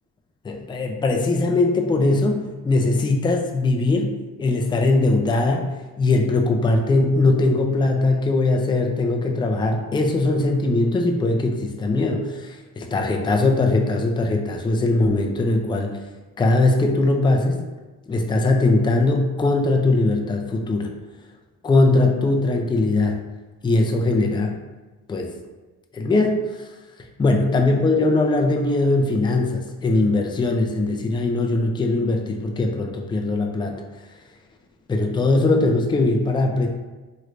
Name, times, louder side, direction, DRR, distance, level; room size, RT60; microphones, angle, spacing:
voice 1, 0.4-4.1 4.4-5.7 6.0-15.9 16.4-17.6 18.1-20.9 21.6-23.2 23.6-24.6 25.1-25.3 25.9-26.4 27.2-33.8 34.9-36.7, left 2 dB, 15° left, 2 dB, 0.3 m, -20 dB
3.1 x 3.1 x 2.5 m, 1.2 s
cardioid pair, 85°, 37 cm